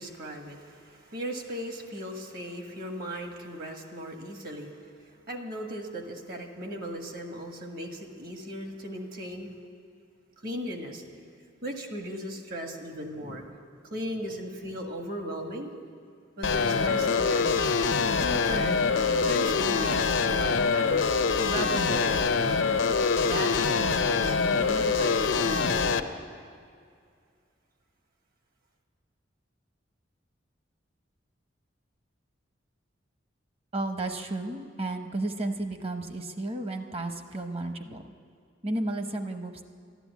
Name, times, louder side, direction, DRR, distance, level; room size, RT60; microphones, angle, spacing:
voice 1, 0.0-9.6 10.4-11.0 11.6-13.5 13.8-15.7 16.4-17.8 18.2-18.9 19.2-21.0 21.5-22.6 23.2-26.1, equal, 50° right, 3 dB, 1.6 m, -37 dB
sound 1, 16.4-26.0, left 5 dB, 85° left, 0.6 m, -25 dB
voice 2, 33.7-38.1 38.6-39.6, right 2 dB, 30° right, 6 dB, 0.9 m, -33 dB
12.5 x 12.0 x 8.3 m, 2.2 s
head